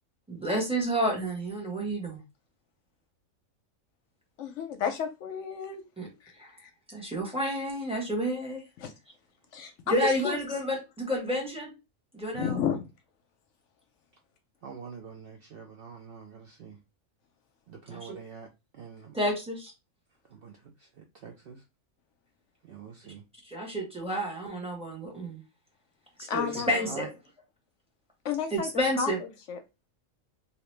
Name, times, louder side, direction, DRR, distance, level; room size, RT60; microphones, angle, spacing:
voice 1, 0.3-2.2 6.0-6.1 6.4-6.5 6.9-8.6 9.9-11.7 12.1-12.6 17.9-18.2 19.1-19.7 23.4-25.4 26.2-27.1 28.5-29.2, equal, 5° right, 1.0 m, -30 dB
voice 2, 4.4-5.8 6.6-6.7 8.8-8.9 9.5-10.4 12.3-12.9 26.3-26.8 28.2-28.7 29.0-29.1 29.5-29.6, left 7 dB, 70° left, 0.8 m, -31 dB
voice 3, 14.6-16.8 17.7-18.5 18.7-19.2 20.3-21.6 22.6-23.2 26.5-27.1, right 6 dB, 65° right, 0.6 m, -45 dB
2.8 x 2.8 x 3.2 m
omnidirectional pair, 1.4 m